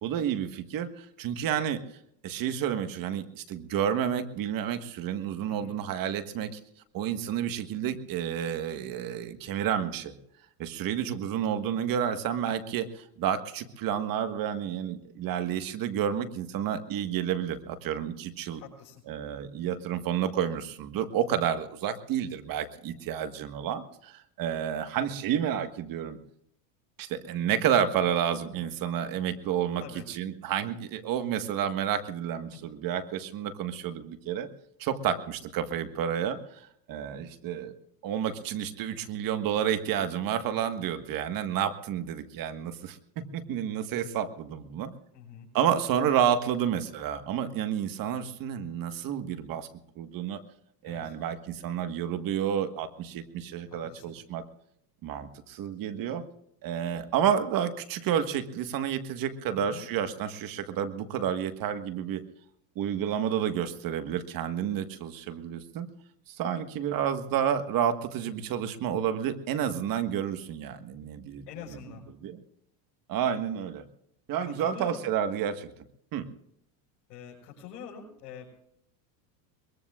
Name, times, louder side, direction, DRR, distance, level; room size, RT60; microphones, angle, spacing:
voice 1, 0.0-1.8 2.2-6.6 6.9-10.1 10.6-18.6 19.1-26.2 27.0-34.5 34.8-36.6 36.9-37.7 38.0-44.9 45.5-49.7 50.0-50.4 50.8-54.4 55.0-56.2 56.6-62.2 62.7-65.9 66.3-71.4 71.7-71.8 72.2-72.4 73.1-73.8 74.3-75.7 76.1-76.3, right 9 dB, 45° right, 9 dB, 1.6 m, -30 dB
voice 2, 18.5-19.0 29.8-30.0 45.1-45.5 50.8-51.2 53.7-54.1 59.5-59.9 71.5-72.0 74.4-75.0 77.1-78.6, left 7 dB, 80° left, -5 dB, 5.6 m, -45 dB
22.5 x 22.0 x 2.5 m, 0.72 s
supercardioid pair, 120°, 48 cm